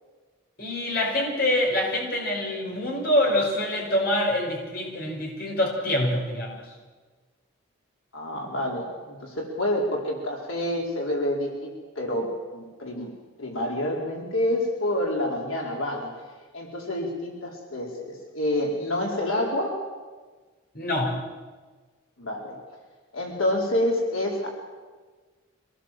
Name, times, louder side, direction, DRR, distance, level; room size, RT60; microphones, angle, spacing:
voice 1, 0.6-6.6 20.7-21.2, left 1 dB, 45° left, 0 dB, 5.1 m, -25 dB
voice 2, 8.1-13.1 13.4-16.1 16.5-19.8 22.2-22.6 23.1-24.5, left 1 dB, 85° left, -1 dB, 4.6 m, -28 dB
25.0 x 18.5 x 7.7 m, 1.4 s
head